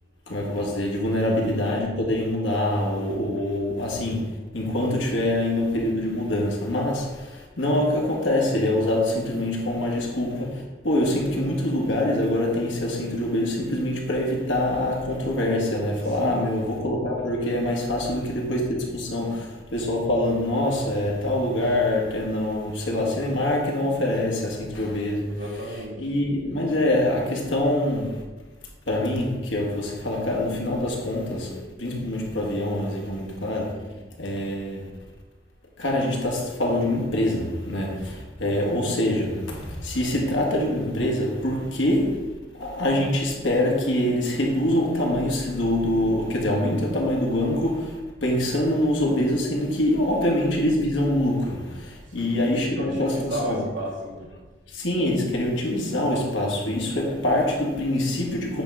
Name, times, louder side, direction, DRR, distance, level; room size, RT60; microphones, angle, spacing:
voice 1, 0.3-25.3 26.0-28.2 28.9-33.8 34.2-34.9 35.8-42.3 42.5-53.6 54.7-58.6, left 1 dB, 80° left, 1.7 m, -25 dB
voice 2, 16.0-16.6 25.2-26.1 52.2-54.3, equal, 70° right, 2.3 m, -34 dB
8.8 x 3.6 x 5.5 m
head